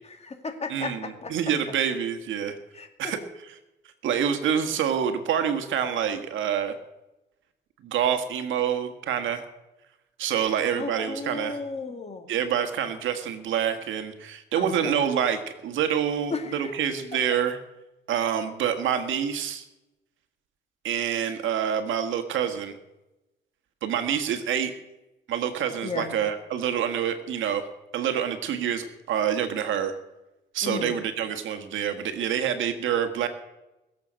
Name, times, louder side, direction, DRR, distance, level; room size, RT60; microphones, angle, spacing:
voice 1, 0.1-1.3 2.7-3.1 10.5-12.3 14.6-15.2 16.3-16.7 25.8-26.1 30.6-31.0, left 4 dB, 30° left, 6 dB, 2.2 m, -34 dB
voice 2, 0.7-2.6 3.0-3.5 4.0-6.8 7.8-9.4 10.2-11.6 12.3-17.6 18.1-19.6 20.8-22.8 23.8-24.7 25.3-27.6 27.9-29.9 30.5-33.3, right 8 dB, 75° right, 7 dB, 1.7 m, -27 dB
21.5 x 7.6 x 6.4 m, 0.96 s
cardioid pair, 90°, 20 cm